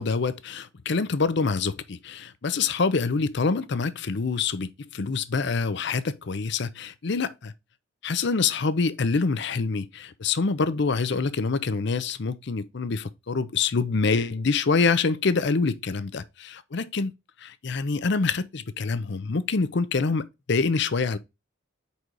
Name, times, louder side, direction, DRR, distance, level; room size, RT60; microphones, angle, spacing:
voice 1, 0.0-7.5 8.0-17.1 17.4-21.2, left 4 dB, 55° left, 0.6 m, -26 dB
5.0 x 4.1 x 4.6 m
head